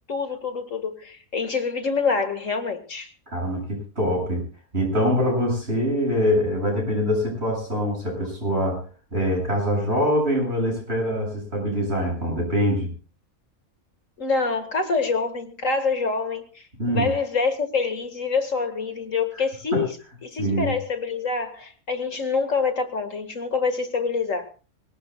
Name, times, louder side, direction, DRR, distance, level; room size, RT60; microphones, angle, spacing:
voice 1, 0.1-3.1 14.2-20.0 20.2-24.5, left 4 dB, 60° left, 2.3 m, -26 dB
voice 2, 3.3-4.5 4.7-8.8 9.1-12.9 16.8-17.1 19.7-19.8 20.4-20.7, equal, 45° right, 8.5 m, -24 dB
24.5 x 18.5 x 2.4 m
omnidirectional pair, 1.5 m